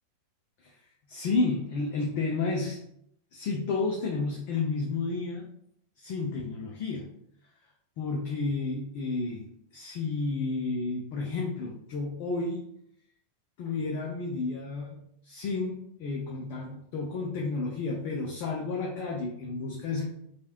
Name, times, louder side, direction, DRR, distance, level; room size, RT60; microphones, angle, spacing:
voice 1, 1.1-2.8 3.3-5.5 6.0-7.2 8.0-12.6 13.6-20.1, left 3 dB, 45° left, -1 dB, 0.5 m, -31 dB
3.0 x 2.4 x 2.9 m, 0.71 s
figure-of-eight pair, 90°, 0 cm